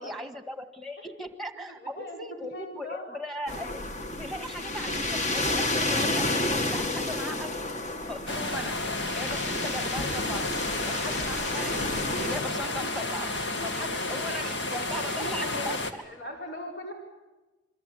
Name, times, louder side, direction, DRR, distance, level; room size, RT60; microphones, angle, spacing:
voice 1, 0.0-3.8 4.2-6.3 6.5-7.5 8.1-10.4 10.9-15.8, equal, ahead, 8 dB, 1.7 m, -38 dB
voice 2, 1.8-2.2 2.5-3.2 15.1-16.9, left 1 dB, 65° left, 0 dB, 5.2 m, -39 dB
sound 1, 3.5-12.4, left 2 dB, 40° left, 1.7 m, -31 dB
sound 2, 8.3-15.9, left 2 dB, 85° left, 2.2 m, -31 dB
27.0 x 23.5 x 8.1 m, 1.2 s
head